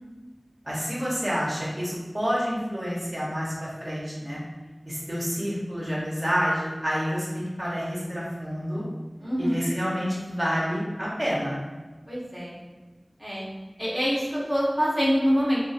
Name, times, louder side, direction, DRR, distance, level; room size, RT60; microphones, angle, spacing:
voice 1, 0.6-4.4 4.9-8.8 9.4-11.6, equal, 40° right, -6 dB, 0.7 m, -28 dB
voice 2, 9.2-9.7 12.1-12.6 13.2-13.5 13.8-15.6, equal, 5° right, -7 dB, 0.7 m, -25 dB
2.3 x 2.3 x 2.6 m, 1.2 s
wide cardioid pair, 50°, 0 cm